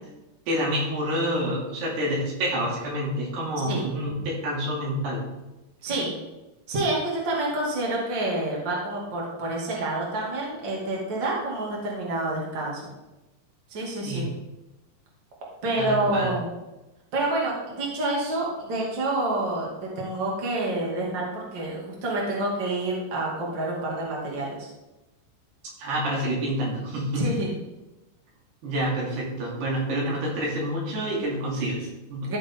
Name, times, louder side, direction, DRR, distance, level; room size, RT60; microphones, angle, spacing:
voice 1, 0.5-5.2 14.0-14.3 15.8-16.3 25.8-27.3 28.6-32.3, equal, 80° right, -4 dB, 4.8 m, -28 dB
voice 2, 6.7-12.9 13.7-14.3 15.6-16.5 17.1-19.7 20.0-24.7 27.1-27.5 32.2-32.4, right 2 dB, 30° right, -3 dB, 2.7 m, -28 dB
14.0 x 7.2 x 3.8 m, 1.0 s
omnidirectional pair, 4.6 m